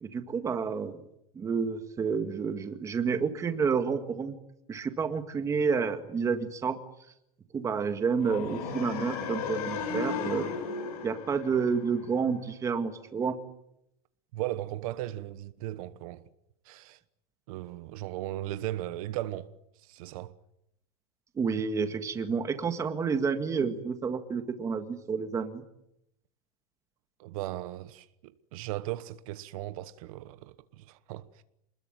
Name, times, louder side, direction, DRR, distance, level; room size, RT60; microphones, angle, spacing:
voice 1, 0.0-1.0 1.4-4.4 4.7-6.8 7.5-10.5 11.0-13.4 21.4-25.6, right 5 dB, 15° right, 1.9 m, -29 dB
sound 1, 8.2-12.3, left 5 dB, 70° left, 7.7 m, -35 dB
voice 2, 14.3-16.3 16.6-17.0 17.5-20.4 27.2-31.4, right 15 dB, 60° right, 1.2 m, -37 dB
28.0 x 21.0 x 9.2 m
supercardioid pair, 170°, 20 cm